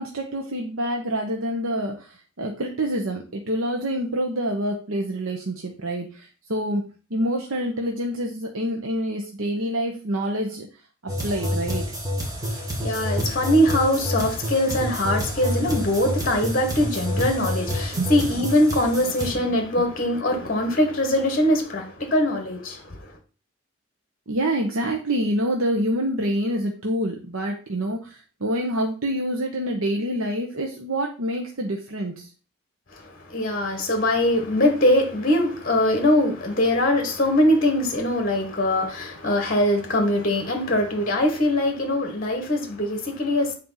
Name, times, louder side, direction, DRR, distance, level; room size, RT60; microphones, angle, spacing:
voice 1, 0.0-11.9 18.0-18.1 19.3-19.4 19.8-19.9 24.3-32.3, right 1 dB, 85° right, 1.1 m, -27 dB
sound 1, 11.1-19.3, equal, 15° right, 1.7 m, -28 dB
voice 2, 12.5-23.0 32.9-33.0 33.3-43.5, left 1 dB, 40° left, 1.4 m, -22 dB
8.9 x 4.2 x 5.6 m
head